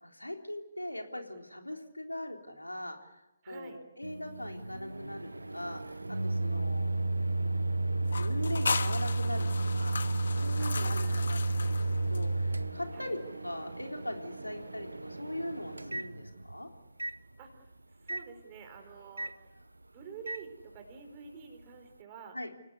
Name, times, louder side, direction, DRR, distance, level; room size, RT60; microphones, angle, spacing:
voice 1, 0.0-6.0 6.2-6.9 7.4-9.5 9.7-10.0 10.4-16.7 22.3-22.5, left 1 dB, 85° left, 3 dB, 3.6 m, -41 dB
voice 2, 3.4-3.8 6.4-6.7 10.4-11.3 12.9-13.2 17.4-17.7 18.0-19.5 19.9-22.4, right 6 dB, 25° right, 5 dB, 4.3 m, -49 dB
Microwave oven, 4.0-16.6 17.0-17.2 18.1-18.2 19.2-19.3 20.3-20.4, right 2 dB, 80° right, 1.0 m, -33 dB
sound 1, 8.0-12.6, left 5 dB, 55° left, 1.5 m, -37 dB
29.5 x 18.5 x 8.2 m, 0.97 s
figure-of-eight pair, 140°, 0 cm